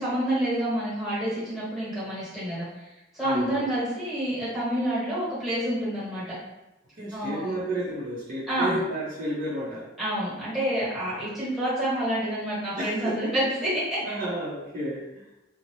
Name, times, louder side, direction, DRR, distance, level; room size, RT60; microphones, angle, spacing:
voice 1, 0.0-2.7 3.2-6.2 7.1-7.6 8.5-8.8 10.0-13.7, right 1 dB, ahead, -10 dB, 1.2 m, -28 dB
voice 2, 3.2-3.7 7.0-9.8 12.8-13.3 14.0-15.2, right 1 dB, 45° right, -8 dB, 0.7 m, -31 dB
2.6 x 2.0 x 3.0 m, 0.99 s
head